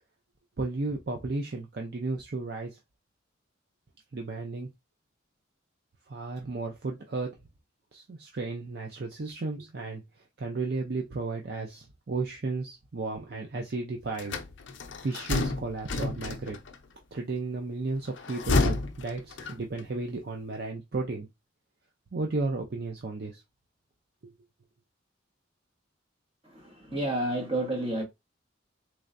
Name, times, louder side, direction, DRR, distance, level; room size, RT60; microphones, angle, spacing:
voice 1, 0.6-2.8 4.1-4.7 6.1-7.4 7.9-14.4 15.0-16.6 17.1-21.3 22.1-23.4 24.2-24.3, right 3 dB, 50° right, 0.5 m, -34 dB
sound 1, 14.2-16.8 18.1-19.9, left 3 dB, 65° left, 0.5 m, -29 dB
voice 2, 26.4-28.0, right 1 dB, 30° right, 1.3 m, -30 dB
3.6 x 3.2 x 2.5 m
head